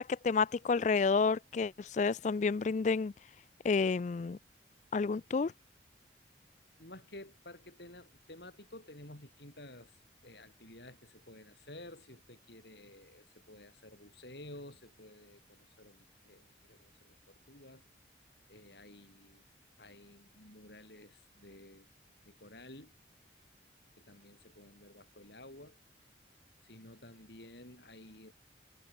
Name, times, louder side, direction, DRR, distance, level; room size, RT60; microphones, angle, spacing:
voice 1, 0.0-3.1 3.6-4.4 4.9-5.5, left 4 dB, 40° left, 0.3 m, -30 dB
voice 2, 6.8-17.8 18.5-19.4 19.8-21.9 22.3-22.9 24.0-25.8 26.6-28.3, left 1 dB, 65° left, 7.8 m, -53 dB
head